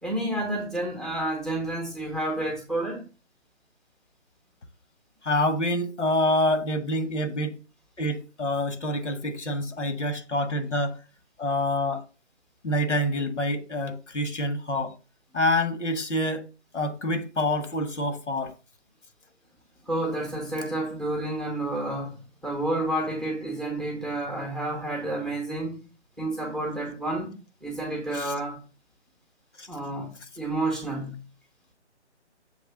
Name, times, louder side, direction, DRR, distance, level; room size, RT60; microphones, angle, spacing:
voice 1, 0.0-3.0 19.9-22.1 22.4-25.8 26.2-27.3 27.6-28.6 29.7-31.2, right 1 dB, ahead, 0.8 m, -30 dB
voice 2, 5.2-7.6 8.0-11.0 11.4-12.0 12.6-14.9 15.3-16.5 16.7-18.5 28.1-28.3 29.6-29.7, left 1 dB, 90° left, 1.5 m, -27 dB
7.1 x 3.2 x 5.7 m
hypercardioid pair, 160°, 35 cm